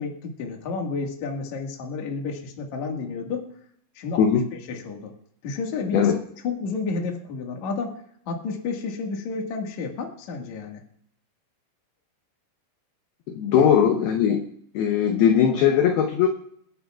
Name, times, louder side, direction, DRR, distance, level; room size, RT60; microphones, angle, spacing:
voice 1, 0.0-3.5 4.0-4.2 4.7-5.1 5.4-6.1 6.4-8.0 8.3-10.8 13.6-13.7, left 4 dB, 55° left, 1 dB, 2.3 m, -31 dB
voice 2, 13.3-14.5 14.7-16.3, left 8 dB, 75° left, 4 dB, 2.4 m, -19 dB
28.5 x 11.0 x 2.4 m, 0.69 s
omnidirectional pair, 5.4 m